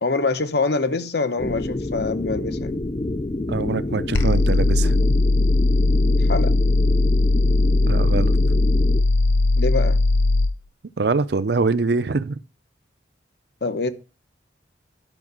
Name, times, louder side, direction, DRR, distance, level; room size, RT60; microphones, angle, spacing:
voice 1, 0.0-2.8 6.1-6.5 9.6-10.0 13.6-13.9, left 3 dB, 60° left, 0.9 m, -25 dB
sound 1, 1.4-9.0, left 2 dB, 30° left, 0.5 m, -28 dB
voice 2, 3.5-5.1 7.9-8.3 11.0-12.4, right 4 dB, 60° right, 0.6 m, -23 dB
sound 2, 4.1-10.5, left 2 dB, 90° left, 0.8 m, -18 dB
11.0 x 5.8 x 6.0 m
head